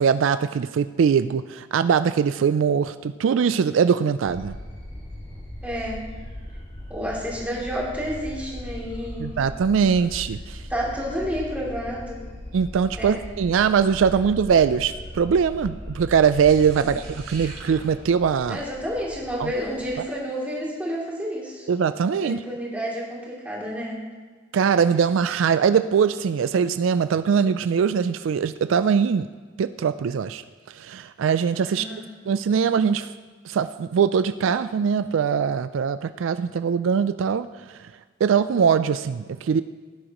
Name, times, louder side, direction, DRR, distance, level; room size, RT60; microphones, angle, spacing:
voice 1, 0.0-4.6 9.2-10.6 12.5-18.6 19.4-19.5 21.7-22.4 24.5-29.3 29.6-31.9 32.3-33.1 33.4-37.8 38.2-39.6, right 6 dB, 75° right, 12 dB, 0.3 m, -22 dB
sound 1, 4.2-20.0, left 1 dB, 30° left, 2.3 m, -39 dB
voice 2, 5.6-6.0 6.9-9.3 10.7-12.2 13.0-13.2 16.8-16.9 18.5-21.6 22.2-24.0 31.7-32.1, equal, 5° right, -5 dB, 2.8 m, -30 dB
sound 2, 16.5-20.8, right 3 dB, 50° right, 3.8 m, -46 dB
17.0 x 10.0 x 3.0 m, 1.5 s
head